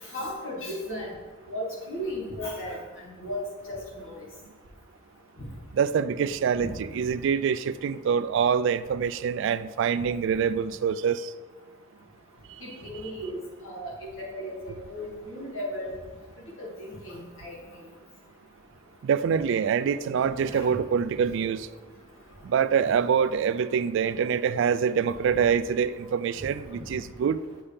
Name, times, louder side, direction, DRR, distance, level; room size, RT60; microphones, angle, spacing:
voice 1, 0.0-1.1 1.5-4.2 6.6-6.7 12.6-13.4 13.6-16.0 16.6-17.6 20.5-20.7 26.7-26.8, equal, 85° left, 2.2 m, -36 dB
voice 2, 5.7-11.3 19.0-21.7 22.4-27.4, right 7 dB, 65° right, 0.3 m, -25 dB
7.2 x 6.9 x 3.4 m
head